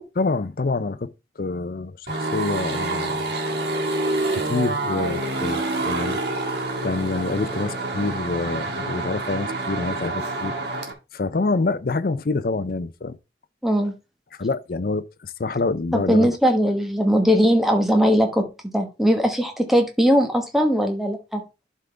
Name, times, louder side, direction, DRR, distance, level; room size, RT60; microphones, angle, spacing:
voice 1, 0.2-1.1 1.4-3.2 4.3-6.6 6.8-10.6 11.1-13.2 14.4-16.3, left 3 dB, 50° left, 0.5 m, -26 dB
sound 1, 2.1-10.9, right 2 dB, 65° right, 1.9 m, -27 dB
voice 2, 13.6-13.9 15.9-18.4 18.7-21.4, equal, ahead, 1.1 m, -19 dB
11.5 x 3.8 x 3.3 m
head